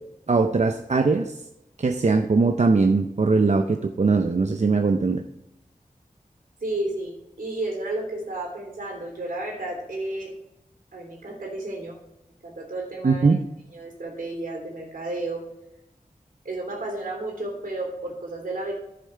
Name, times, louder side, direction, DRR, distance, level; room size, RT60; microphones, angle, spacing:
voice 1, 0.3-1.4 1.8-5.2 13.0-13.4, right 4 dB, 50° right, 5 dB, 0.6 m, -21 dB
voice 2, 6.6-10.3 10.9-12.0 12.4-13.3 13.7-15.4 16.4-18.7, right 2 dB, 75° right, 1 dB, 3.3 m, -32 dB
11.0 x 6.7 x 4.5 m, 0.85 s
wide cardioid pair, 45°, 15 cm